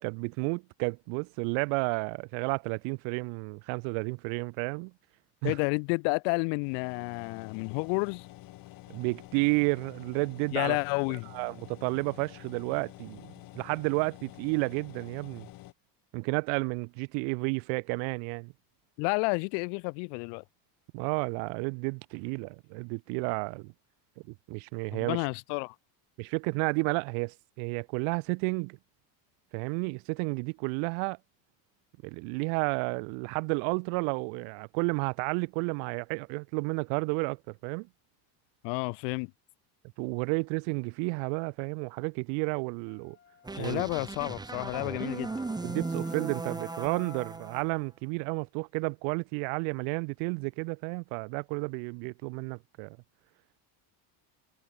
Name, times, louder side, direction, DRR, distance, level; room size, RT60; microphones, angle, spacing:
voice 1, 0.0-4.9 5.4-5.6 8.9-10.8 11.3-13.2 13.5-15.5 16.1-18.5 20.9-23.7 24.5-25.2 26.2-28.8 29.5-31.2 32.0-37.9 40.0-43.2 43.6-43.8 45.6-53.0, right 40 dB or more, 70° right, 2.4 m, -31 dB
voice 2, 5.4-8.3 10.5-11.3 19.0-20.4 24.9-25.7 38.6-39.3 43.5-45.3, left 40 dB or more, 70° left, 0.6 m, -30 dB
sound 1, 6.6-15.7, left 17 dB, 45° left, 4.0 m, -49 dB
Wind instrument woodwind instrument, 42.9-47.6, left 8 dB, 25° left, 7.3 m, -53 dB
sound 2, 43.4-47.6, right 3 dB, 10° right, 2.3 m, -37 dB
cardioid pair, 180°, 46 cm